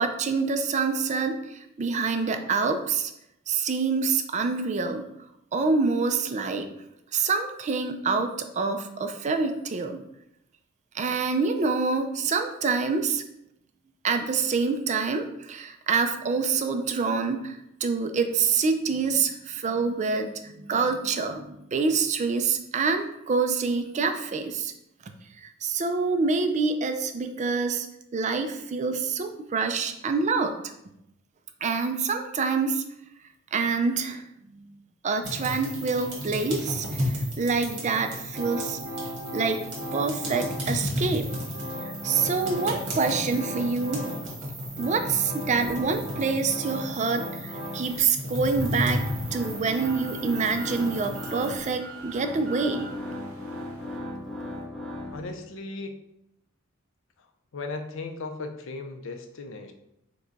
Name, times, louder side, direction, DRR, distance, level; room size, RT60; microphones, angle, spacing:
voice 1, 0.0-3.1 3.5-5.0 5.5-6.7 7.1-10.0 10.9-13.2 14.0-24.7 25.4-27.9 28.1-30.7 31.6-32.8 33.5-34.2 34.5-34.7 35.0-37.0 37.4-38.8 39.3-39.6 39.9-41.3 42.0-44.0 44.8-49.0 49.3-52.9, right 4 dB, 35° right, 7 dB, 0.4 m, -26 dB
sound 1, 35.2-51.7, equal, 55° right, 1.3 m, -34 dB
sound 2, 38.3-40.8 41.0-44.3 44.6-55.5, left 1 dB, ahead, 0.7 m, -37 dB
sound 3, 48.7-54.0, right 4 dB, 85° right, 0.7 m, -46 dB
voice 2, 55.1-56.0 57.5-59.7, left 3 dB, 65° left, 6 dB, 0.5 m, -36 dB
4.8 x 2.3 x 3.9 m, 0.81 s
head